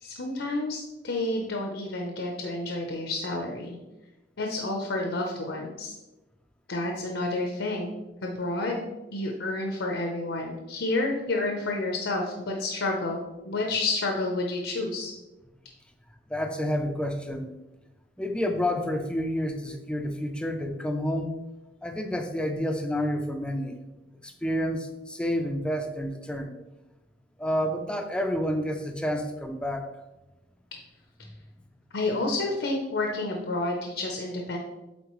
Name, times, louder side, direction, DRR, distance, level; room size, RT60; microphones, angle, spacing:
voice 1, 0.0-3.8 4.4-5.9 6.7-7.9 8.2-8.8 9.1-15.1 31.9-34.6, left 2 dB, 80° left, 1 dB, 0.8 m, -30 dB
voice 2, 16.3-17.5 18.2-21.3 21.8-23.8 24.2-26.6 27.4-29.9, equal, 5° left, 5 dB, 0.5 m, -29 dB
8.6 x 3.8 x 3.1 m, 1.0 s
head